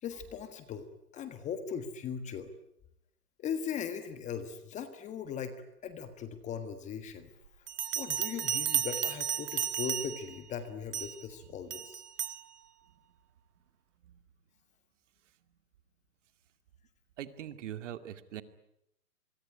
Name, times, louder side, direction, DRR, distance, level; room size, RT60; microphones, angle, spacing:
voice 1, 0.0-2.5 3.4-7.3 7.9-12.0, left 7 dB, 15° left, 10 dB, 1.5 m, -39 dB
Bell, 7.7-10.4 10.9-11.2 11.7-12.4, right 9 dB, 75° right, 1.7 m, -33 dB
voice 2, 17.2-18.4, right 11 dB, 50° right, 10 dB, 2.4 m, -42 dB
25.5 x 23.0 x 10.0 m, 0.79 s
hypercardioid pair, 145°, 47 cm